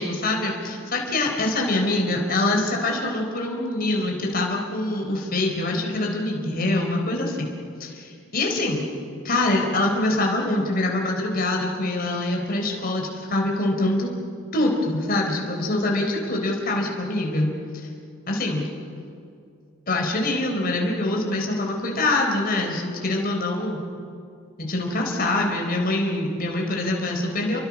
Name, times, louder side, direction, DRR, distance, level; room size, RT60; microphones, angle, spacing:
voice 1, 0.0-7.5 7.8-8.8 9.2-14.1 14.5-17.5 18.3-18.7 19.9-23.8 24.6-27.6, left 2 dB, 45° left, 1 dB, 4.0 m, -24 dB
29.5 x 23.5 x 6.2 m, 2.4 s
head